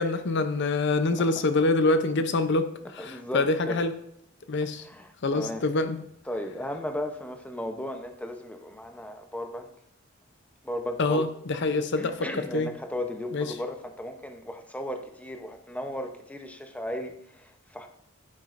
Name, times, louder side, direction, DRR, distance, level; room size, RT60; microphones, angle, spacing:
voice 1, 0.0-3.9 4.5-4.9 5.2-6.0 11.0-12.7 13.3-13.5, left 3 dB, 55° left, 10 dB, 0.6 m, -26 dB
voice 2, 3.0-3.8 4.8-5.6 6.3-9.7 10.6-11.3 11.9-17.9, equal, 5° left, 5 dB, 0.7 m, -35 dB
11.0 x 9.1 x 2.5 m, 0.77 s
head